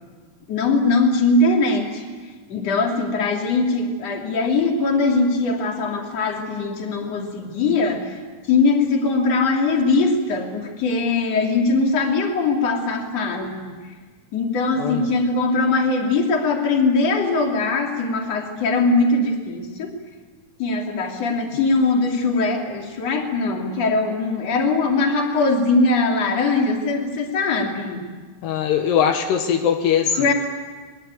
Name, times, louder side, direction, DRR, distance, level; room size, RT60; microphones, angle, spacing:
voice 1, 0.5-2.0 2.5-8.2 8.5-13.8 14.3-20.0 20.6-28.1 30.2-30.3, left 3 dB, 40° left, 1 dB, 3.8 m, -21 dB
voice 2, 14.8-15.1 28.4-30.3, left 8 dB, 80° left, 5 dB, 3.4 m, -21 dB
25.0 x 21.5 x 9.3 m, 1.4 s
omnidirectional pair, 4.9 m